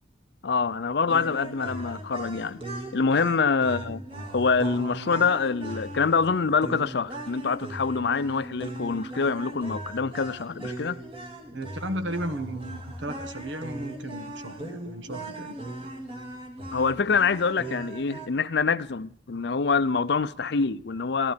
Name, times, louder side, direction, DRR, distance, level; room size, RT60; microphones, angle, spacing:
voice 1, 0.4-2.6 2.9-4.0 4.3-11.0 16.7-21.3, left 5 dB, 60° left, 0.6 m, -25 dB
sound 1, 1.1-18.3, right 1 dB, 30° right, 2.3 m, -39 dB
voice 2, 3.6-4.2 4.9-5.1 11.5-15.6, right 1 dB, 70° right, 1.3 m, -35 dB
15.0 x 12.0 x 5.2 m
head